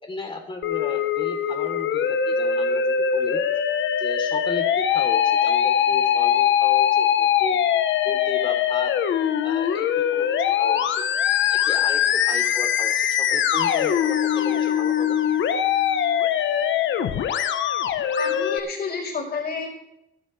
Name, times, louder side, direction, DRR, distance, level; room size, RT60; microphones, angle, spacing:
voice 1, 0.0-3.4 4.0-7.6 8.0-9.0 9.4-10.3 10.6-11.0 11.5-15.2, left 2 dB, 25° left, 3 dB, 3.7 m, -35 dB
Musical instrument, 0.6-18.6, left 9 dB, 75° left, 1.2 m, -22 dB
voice 2, 18.2-19.7, left 5 dB, 50° left, -5 dB, 4.8 m, -29 dB
22.0 x 9.7 x 3.4 m, 0.85 s
cardioid pair, 90°, 20 cm